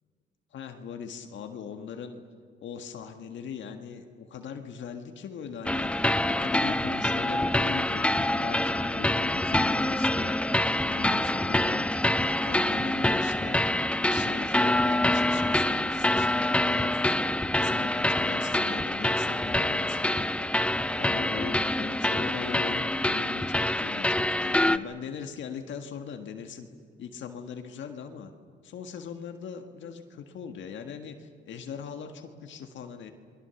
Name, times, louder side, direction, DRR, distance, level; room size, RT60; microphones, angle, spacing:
voice 1, 0.5-2.2 2.6-10.3 10.8-11.9 12.2-17.2 17.5-20.5 21.0-26.7 27.0-28.3 28.6-33.1, left 7 dB, 70° left, 5 dB, 1.6 m, -40 dB
sound 1, 5.7-24.8, left 1 dB, 5° left, 0.6 m, -26 dB
28.0 x 22.0 x 7.1 m, 2.1 s
cardioid pair, 90°, 20 cm